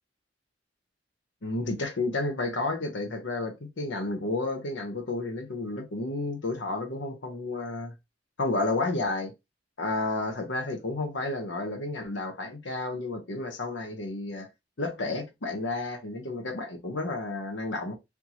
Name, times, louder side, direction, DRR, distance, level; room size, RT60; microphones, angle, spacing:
voice 1, 1.4-7.9 8.4-9.3 9.8-14.5 14.8-17.9, left 2 dB, 70° left, 0.9 m, -31 dB
4.4 x 2.8 x 2.8 m
head